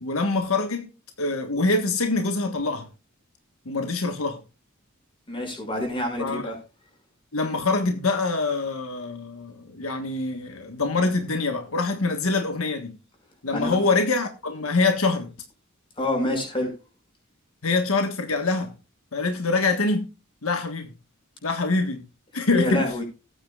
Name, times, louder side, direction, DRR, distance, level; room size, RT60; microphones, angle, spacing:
voice 1, 0.0-0.9 1.2-2.9 3.6-4.4 6.2-6.5 7.3-13.0 13.4-15.3 17.6-18.7 19.1-20.1 20.4-20.9 21.4-22.1 22.3-23.0, left 3 dB, 80° left, 1.5 m, -25 dB
voice 2, 5.3-6.6 13.5-13.8 16.0-16.7 22.5-23.0, left 1 dB, 25° left, 6.2 m, -27 dB
18.0 x 9.1 x 2.4 m
head